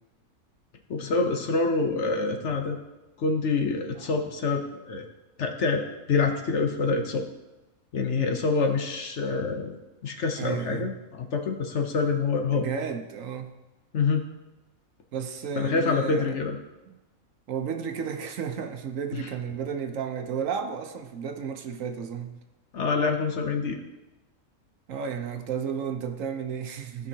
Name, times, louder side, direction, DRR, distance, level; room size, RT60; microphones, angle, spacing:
voice 1, 0.9-2.8 3.2-5.0 5.4-5.8 6.1-7.2 7.9-9.8 10.0-12.6 13.9-14.2 15.6-16.6 19.1-19.2 22.7-23.8, left 4 dB, 60° left, 4 dB, 1.1 m, -26 dB
voice 2, 10.4-10.9 12.5-13.5 15.1-16.4 16.9-17.0 17.5-22.4 24.9-27.1, right 7 dB, 70° right, 6 dB, 1.1 m, -33 dB
15.0 x 5.4 x 2.8 m, 1.1 s
omnidirectional pair, 1.5 m